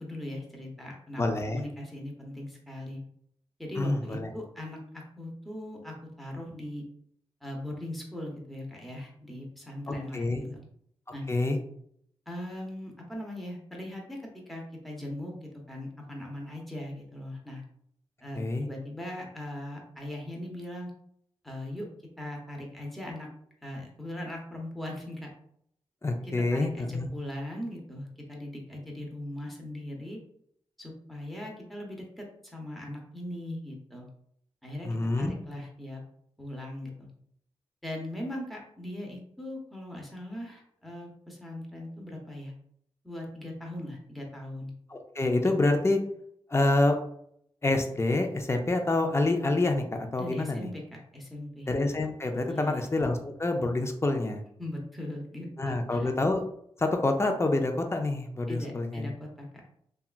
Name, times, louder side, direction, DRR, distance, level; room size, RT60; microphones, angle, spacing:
voice 1, 0.0-3.0 3.6-6.8 7.4-10.6 11.1-11.2 12.3-14.2 14.5-17.6 18.2-20.9 21.4-21.9 22.2-23.3 23.6-25.3 26.2-30.2 30.8-34.1 34.6-36.0 36.4-37.1 37.8-42.5 43.0-44.7 45.5-45.6 50.2-51.7 52.5-52.9 54.6-56.1 58.5-59.5, left 1 dB, ahead, -1 dB, 0.8 m, -39 dB
voice 2, 1.2-1.6 3.8-4.3 9.9-10.5 11.3-11.6 18.3-18.7 26.0-27.1 34.8-35.3 44.9-46.0 46.5-47.0 47.6-49.8 50.1-50.7 51.7-54.4 55.6-56.4 56.8-59.1, left 2 dB, 25° left, 4 dB, 0.5 m, -27 dB
2.8 x 2.3 x 2.4 m, 0.69 s
cardioid pair, 50°, 11 cm